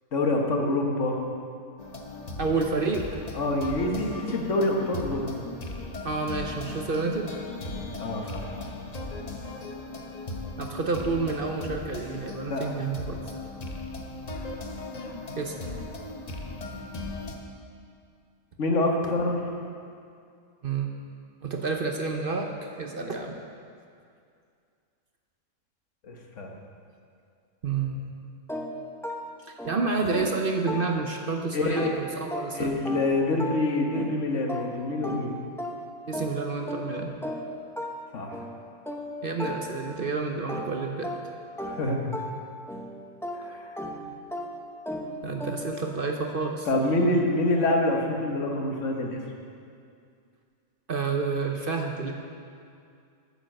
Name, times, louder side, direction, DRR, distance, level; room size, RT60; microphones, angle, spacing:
voice 1, 0.1-1.2 3.3-5.3 8.0-8.5 12.4-12.9 18.6-19.4 26.0-26.5 31.5-31.9 32.5-35.4 38.1-38.4 41.6-42.1 43.3-43.7 46.7-49.2, left 2 dB, 55° left, 1 dB, 1.5 m, -26 dB
sound 1, 1.8-17.4, left 2 dB, 35° left, 0.8 m, -37 dB
voice 2, 2.4-3.0 6.0-7.3 10.6-13.2 15.4-15.5 20.6-20.9 21.4-22.5 22.8-23.3 27.6-28.0 29.4-32.7 36.1-37.1 39.2-41.1 45.2-46.7 50.9-52.1, right 4 dB, 45° right, 2 dB, 0.8 m, -29 dB
sound 2, 28.5-31.4 31.8-40.1 40.5-45.9, equal, 5° left, 0.3 m, -37 dB
9.2 x 8.9 x 6.4 m, 2.3 s
omnidirectional pair, 1.5 m